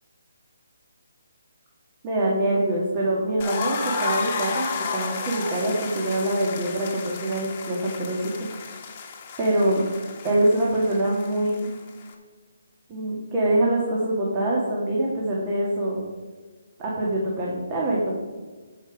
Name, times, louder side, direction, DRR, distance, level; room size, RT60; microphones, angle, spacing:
voice 1, 2.0-8.5 9.4-9.8 10.2-11.7 12.9-16.0 16.8-18.2, right 1 dB, 25° right, -5 dB, 2.1 m, -24 dB
sound 1, 3.4-12.1, left 5 dB, 30° left, 1.5 m, -33 dB
13.5 x 5.4 x 4.8 m, 1.4 s
figure-of-eight pair, 150°, 0 cm